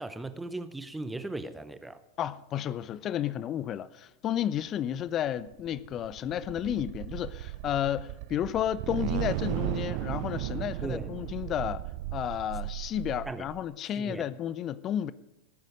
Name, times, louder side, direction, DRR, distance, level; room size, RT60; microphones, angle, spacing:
voice 1, 0.0-2.0 10.8-11.1 13.3-13.5 14.0-14.3, right 2 dB, 5° right, 0.7 m, -37 dB
voice 2, 2.2-11.8 12.1-15.1, left 10 dB, 30° left, 0.5 m, -32 dB
sound 1, 5.3-13.7, right 18 dB, 45° right, 0.4 m, -35 dB
18.5 x 9.2 x 5.1 m
figure-of-eight pair, 90°, 0 cm